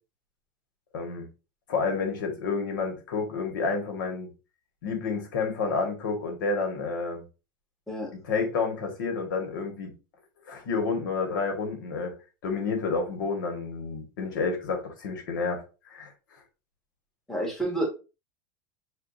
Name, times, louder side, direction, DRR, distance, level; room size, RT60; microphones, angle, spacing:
voice 1, 0.9-1.3 1.7-4.3 4.8-7.2 8.2-9.9 10.5-12.1 12.4-16.4, left 4 dB, 90° left, 4 dB, 1.6 m, -30 dB
voice 2, 17.3-17.9, right 1 dB, 5° left, -1 dB, 0.8 m, -29 dB
6.6 x 2.4 x 2.6 m, 0.30 s
supercardioid pair, 175°, 10 cm